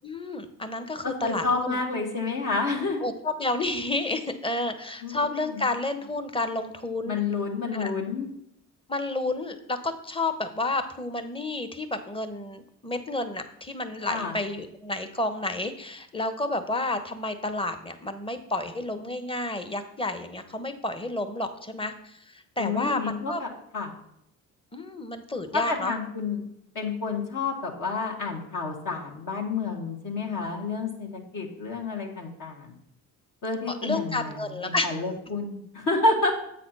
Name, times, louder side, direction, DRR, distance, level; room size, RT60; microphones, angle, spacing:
voice 1, 0.0-1.8 3.0-7.2 7.7-7.9 8.9-23.4 24.7-25.9 33.7-34.9, left 2 dB, 15° left, 8 dB, 1.0 m, -30 dB
voice 2, 1.0-3.0 5.0-5.6 7.1-8.3 14.1-14.3 22.6-23.9 25.5-26.4 26.7-32.7 33.4-36.3, left 3 dB, 50° left, -1 dB, 1.7 m, -29 dB
7.8 x 4.2 x 5.5 m, 0.76 s
hypercardioid pair, 55°, 41 cm